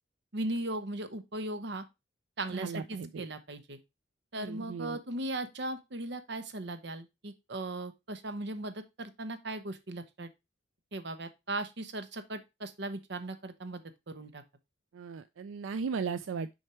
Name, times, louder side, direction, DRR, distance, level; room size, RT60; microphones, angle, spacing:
voice 1, 0.3-1.9 2.4-3.8 4.3-10.3 10.9-14.4, right 2 dB, 60° right, 10 dB, 1.0 m, -38 dB
voice 2, 2.5-3.3 4.3-5.0 14.9-16.5, right 5 dB, 90° right, 12 dB, 0.4 m, -36 dB
6.6 x 4.5 x 4.4 m, 0.23 s
head